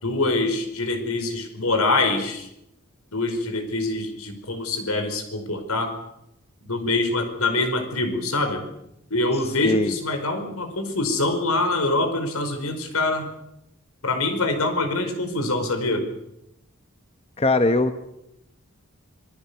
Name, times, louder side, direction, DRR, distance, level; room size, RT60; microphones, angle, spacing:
voice 1, 0.0-2.5 3.1-5.9 6.6-8.6 9.1-13.3 14.0-16.1, left 2 dB, 90° left, 7 dB, 5.0 m, -24 dB
voice 2, 17.4-18.0, left 2 dB, 30° left, 9 dB, 1.1 m, -20 dB
27.0 x 21.0 x 7.0 m, 0.82 s
head